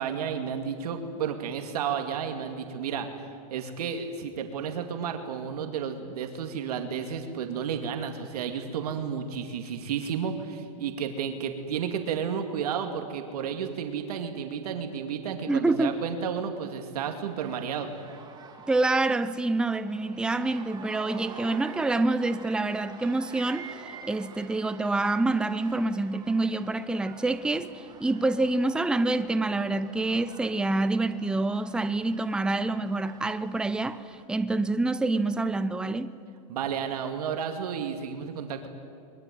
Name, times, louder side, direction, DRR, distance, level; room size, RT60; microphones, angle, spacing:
voice 1, 0.0-3.1 3.5-17.9 36.5-38.7, right 7 dB, 75° right, 2.4 m, -32 dB
voice 2, 15.5-15.9 18.7-27.7 28.0-36.1, right 2 dB, 5° right, 0.7 m, -27 dB
sound 1, 17.4-34.2, right 5 dB, 20° right, 2.8 m, -47 dB
22.5 x 22.0 x 9.3 m
supercardioid pair, 140°, 20 cm